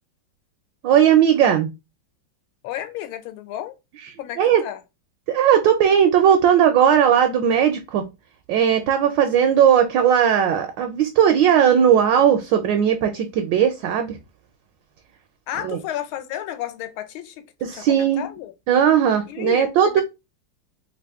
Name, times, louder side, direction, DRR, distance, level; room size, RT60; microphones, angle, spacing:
voice 1, 0.8-1.7 4.4-4.6 5.3-8.0 8.5-14.2 15.6-15.8 17.6-18.2 18.7-20.0, right 9 dB, 75° right, 1.1 m, -17 dB
voice 2, 2.6-3.7 4.2-4.8 15.5-18.5 19.3-20.0, left 12 dB, 80° left, 1.4 m, -32 dB
3.4 x 2.4 x 3.4 m
omnidirectional pair, 2.3 m